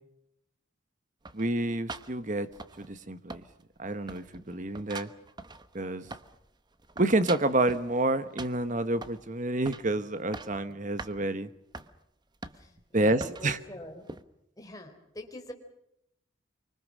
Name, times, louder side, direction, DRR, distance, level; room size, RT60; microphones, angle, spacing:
sound 1, 1.3-3.1 3.3-3.8 4.1-6.5 6.7-7.9 8.4-9.3 9.7-9.9 10.2-10.6 11.0-11.2 11.7-11.9 12.4-12.8 13.2-13.5 14.1-14.2, right 3 dB, 20° right, 1.0 m, -43 dB
voice 1, 1.3-2.5 2.8-3.4 3.8-5.1 5.7-6.1 7.0-11.5 12.9-13.6, right 2 dB, 40° right, 12 dB, 1.2 m, -28 dB
voice 2, 12.5-14.1 14.6-15.5, left 1 dB, 20° left, 3 dB, 3.9 m, -45 dB
25.0 x 24.5 x 6.3 m, 0.79 s
head